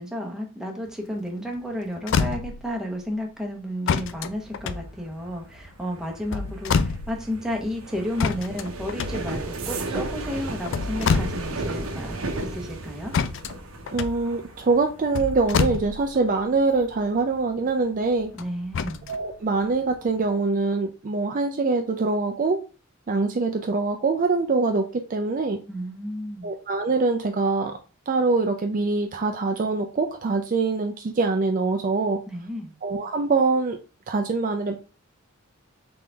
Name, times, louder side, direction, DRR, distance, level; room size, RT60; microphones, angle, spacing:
voice 1, 0.0-13.1 18.4-19.1 25.7-26.5 32.3-32.7, equal, 5° right, 0 dB, 0.9 m, -32 dB
sound 1, 1.6-1.7 1.9-2.8 3.9-5.5 6.1-7.4 8.2-9.6 10.5-11.7 12.0-12.1 13.1-16.3 18.4-19.2 19.8-19.9, left 5 dB, 60° left, 0.4 m, -27 dB
sound 2, 4.0-18.6 19.0-19.4 19.7-20.1, right 2 dB, 80° right, 0.8 m, -36 dB
voice 2, 13.9-18.3 19.1-22.6 23.1-25.6 26.4-27.8 28.1-32.2 32.8-33.8 34.1-34.8, right 3 dB, 40° right, 4 dB, 0.4 m, -24 dB
3.9 x 3.8 x 3.3 m, 0.33 s
head